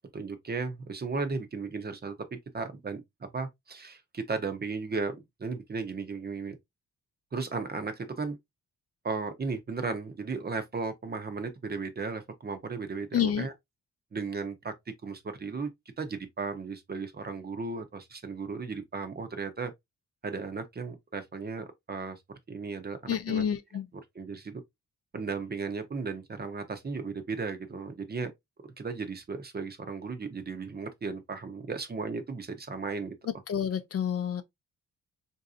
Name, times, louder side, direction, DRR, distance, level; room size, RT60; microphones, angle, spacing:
voice 1, 0.1-2.2 2.5-6.6 7.3-8.4 9.0-13.5 14.1-14.7 15.0-15.7 16.0-19.7 20.2-22.2 22.5-23.4 24.1-24.6 25.1-28.3 28.6-33.2, right 4 dB, 30° right, 0.8 m, -35 dB
voice 2, 13.1-13.5 23.1-23.8 33.5-34.4, left 8 dB, 50° left, 0.5 m, -28 dB
3.9 x 2.7 x 2.4 m
cardioid pair, 115°, 32 cm